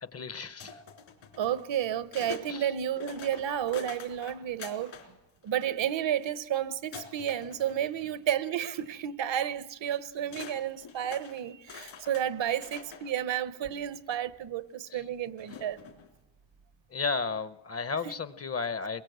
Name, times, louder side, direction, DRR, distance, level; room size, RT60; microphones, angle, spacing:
voice 1, 0.0-0.8 2.5-2.7 14.9-15.0 16.9-19.0, left 4 dB, 30° left, 0.7 m, -33 dB
sound 1, 0.6-2.5 2.9-5.1 5.4-6.3 6.9-8.3 8.7-8.9 9.9-10.0 10.3-13.1 13.9-14.0 15.4-16.1, left 6 dB, 70° left, 3.6 m, -45 dB
voice 2, 1.4-5.0 5.4-15.8 18.0-18.1, right 10 dB, 70° right, 0.9 m, -31 dB
22.0 x 22.0 x 7.9 m
wide cardioid pair, 145°, 47 cm